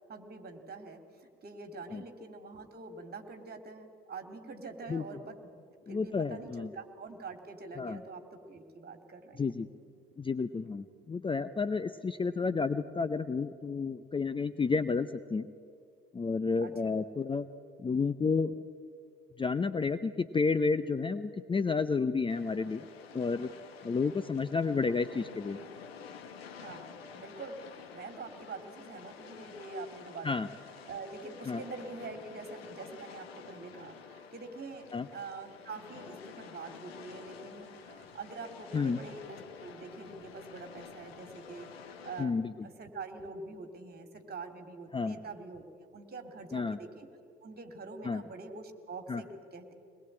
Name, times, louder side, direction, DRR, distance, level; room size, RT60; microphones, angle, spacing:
voice 1, 0.1-5.4 5.9-9.5 16.6-16.9 26.6-30.5 30.9-47.1 47.4-49.7, right 3 dB, 30° right, 6 dB, 3.0 m, -45 dB
voice 2, 5.9-6.7 7.8-8.0 9.4-9.7 10.2-15.5 16.1-17.5 17.8-18.6 19.4-22.9 23.1-23.5 23.8-25.6 30.2-30.5 31.5-31.6 34.9-35.1 38.7-39.0 42.2-42.7 44.9-45.2 46.5-46.8 48.0-48.2 49.1-49.2, left 4 dB, 15° left, 12 dB, 0.7 m, -31 dB
sound 1, 22.3-42.3, left 6 dB, 80° left, 1.6 m, -50 dB
23.0 x 20.5 x 8.8 m, 2.2 s
figure-of-eight pair, 65°, 30 cm